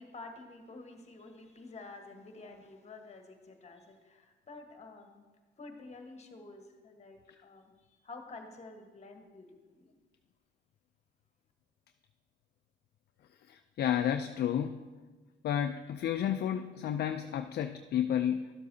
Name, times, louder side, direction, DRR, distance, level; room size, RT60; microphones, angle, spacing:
voice 1, 0.0-5.3 5.6-9.5 9.7-9.9, left 3 dB, 35° left, 4 dB, 1.2 m, -50 dB
voice 2, 13.5-14.9 15.4-18.5, left 9 dB, 55° left, 7 dB, 0.4 m, -31 dB
12.0 x 7.6 x 2.7 m, 1.3 s
cardioid pair, 90°, 20 cm